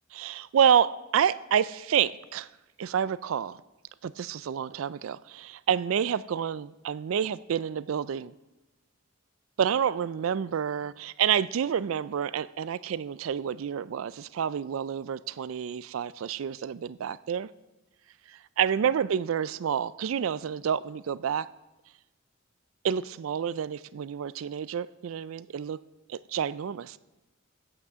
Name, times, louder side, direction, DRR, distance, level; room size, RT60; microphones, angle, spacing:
voice 1, 0.1-2.5 2.8-3.6 4.0-8.3 9.6-17.5 18.3-21.5 22.8-25.8 26.1-27.0, right 8 dB, 75° right, 0.4 m, -28 dB
15.5 x 6.0 x 6.8 m
head